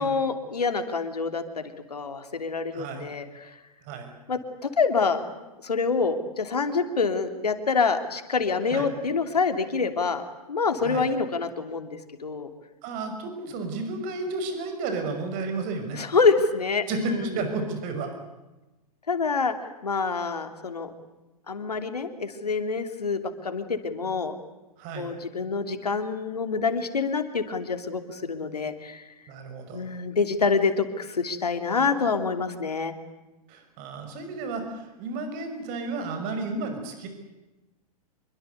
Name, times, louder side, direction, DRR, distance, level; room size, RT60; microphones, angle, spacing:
voice 1, 0.0-1.6 1.9-3.5 4.3-5.2 5.6-10.2 10.5-12.5 15.9-17.4 19.1-19.5 19.8-20.9 21.5-24.3 25.0-29.0 29.7-32.9, left 4 dB, 80° left, 8 dB, 3.0 m, -26 dB
voice 2, 2.7-3.1 3.8-4.1 8.7-8.9 10.8-11.1 12.8-16.0 16.9-18.2 24.8-25.1 29.3-29.8 33.5-37.1, right 3 dB, 40° right, 7 dB, 6.2 m, -32 dB
27.0 x 23.5 x 8.3 m, 1.1 s
figure-of-eight pair, 100°, 20 cm